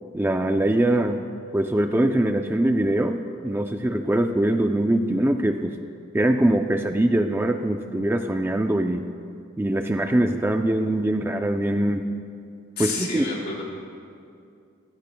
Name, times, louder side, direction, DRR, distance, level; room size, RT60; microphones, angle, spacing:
voice 1, 0.1-1.2 1.5-5.8 6.1-9.1 9.6-12.1 12.8-13.2, right 1 dB, 10° right, 5 dB, 0.5 m, -22 dB
voice 2, 12.8-13.6, left 4 dB, 55° left, -4 dB, 4.4 m, -30 dB
26.5 x 17.0 x 2.3 m, 2.4 s
head